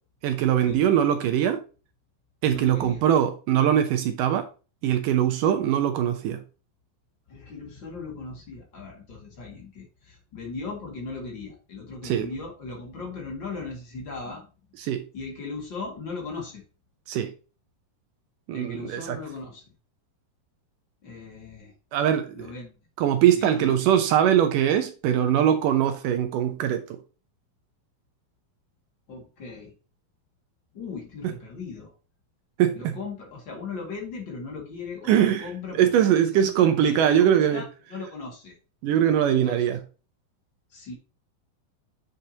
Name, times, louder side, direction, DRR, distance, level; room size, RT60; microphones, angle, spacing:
voice 1, 0.2-1.6 2.4-4.5 4.8-6.4 12.0-12.3 14.8-15.0 17.1-17.3 18.5-19.2 21.9-22.5 23.0-27.0 31.2-31.3 32.6-32.9 35.0-37.6 38.8-39.8, right 10 dB, 75° right, 2.1 m, -22 dB
voice 2, 2.5-3.0 7.3-14.5 15.1-16.6 18.5-19.6 21.0-21.7 22.3-22.8 23.4-23.8 29.1-29.7 30.7-31.9 32.7-37.6 37.9-38.6 39.3-39.7 40.7-40.9, left 4 dB, 35° left, 2.3 m, -38 dB
8.3 x 6.5 x 2.8 m
omnidirectional pair, 4.2 m